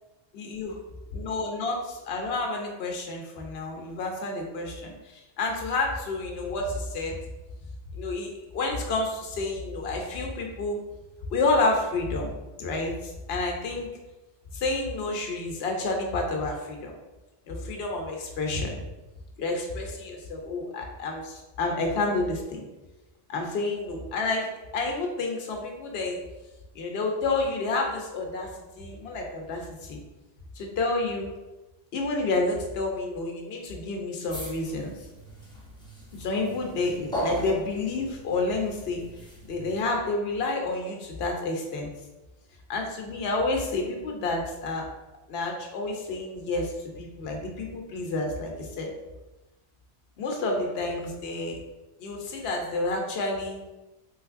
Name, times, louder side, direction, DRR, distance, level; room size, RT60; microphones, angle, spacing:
voice 1, 0.3-0.7 1.1-7.2 7.9-10.8 11.3-13.9 14.5-16.9 17.5-18.8 19.4-22.6 23.3-26.2 26.7-28.5 28.8-30.0 30.6-31.3 31.9-34.9 36.1-39.0 39.4-41.9 42.7-44.9 45.3-48.9 50.2-51.6 52.0-53.6, left 2 dB, 70° left, 2 dB, 0.9 m, -29 dB
sound 1, 34.3-39.9, right 1 dB, 5° left, 0.5 m, -38 dB
3.2 x 3.1 x 2.4 m, 1.1 s
omnidirectional pair, 1.1 m